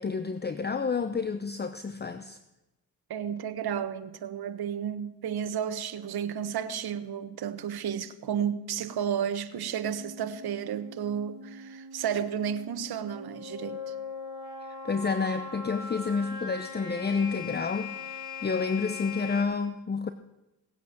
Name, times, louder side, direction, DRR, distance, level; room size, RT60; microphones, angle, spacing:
voice 1, 0.0-2.4 14.8-20.1, left 5 dB, 25° left, 0.8 m, -30 dB
voice 2, 3.1-13.9, right 8 dB, 65° right, 1.3 m, -32 dB
sound 1, 9.8-19.4, left 4 dB, 65° left, 3.3 m, -40 dB
18.5 x 8.2 x 7.7 m
supercardioid pair, 65°, 41 cm